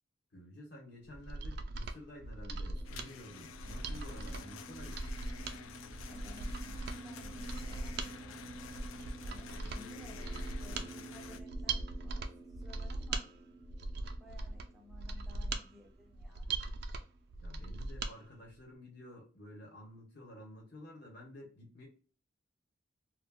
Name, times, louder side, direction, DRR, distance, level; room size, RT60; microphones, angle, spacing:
voice 1, 0.3-5.0 17.4-21.9, left 1 dB, 55° left, -1 dB, 1.0 m, -51 dB
Mechanisms, 1.1-18.1 18.5-18.6, right 3 dB, 55° right, 0.3 m, -40 dB
sound 1, 2.7-17.2, right 3 dB, 25° left, 0.8 m, -51 dB
sound 2, 2.8-11.4, left 7 dB, 85° left, 0.3 m, -50 dB
voice 2, 6.1-8.9 9.2-13.2 14.2-16.5, left 1 dB, ahead, -2 dB, 0.6 m, -57 dB
2.3 x 2.1 x 3.5 m, 0.38 s
head